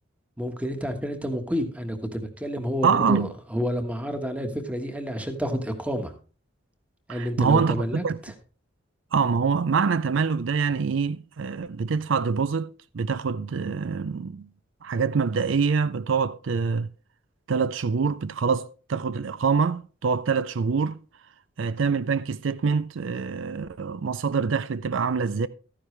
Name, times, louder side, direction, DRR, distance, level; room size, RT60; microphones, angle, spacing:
voice 1, 0.4-6.1 7.1-8.0, equal, 5° right, 1.3 m, -29 dB
voice 2, 2.8-3.3 7.1-8.2 9.1-14.5 14.8-16.9 17.5-21.0 21.6-25.5, right 5 dB, 75° right, 0.5 m, -25 dB
13.0 x 10.0 x 3.3 m
head